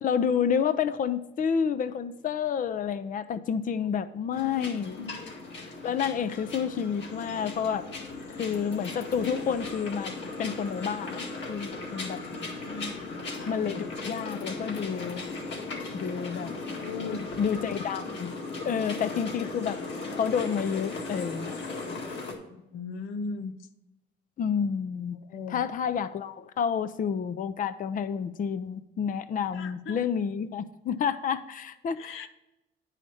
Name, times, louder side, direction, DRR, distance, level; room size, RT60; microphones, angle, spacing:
voice 1, 0.0-5.0 5.8-7.9 8.3-10.1 10.4-12.2 13.5-15.2 15.9-16.5 17.4-18.3 18.6-19.8 20.1-21.5 24.4-25.2 25.5-32.3, left 7 dB, 45° left, 13 dB, 0.5 m, -29 dB
voice 2, 4.3-4.7 5.0-5.1 12.6-13.0 16.8-17.3 22.5-23.5 25.3-25.6 29.5-30.0 32.0-32.3, left 4 dB, 90° left, 9 dB, 0.7 m, -37 dB
sound 1, 4.3-22.3, left 3 dB, 65° left, 1.9 m, -37 dB
9.6 x 4.9 x 4.2 m, 0.96 s
cardioid pair, 90°, 20 cm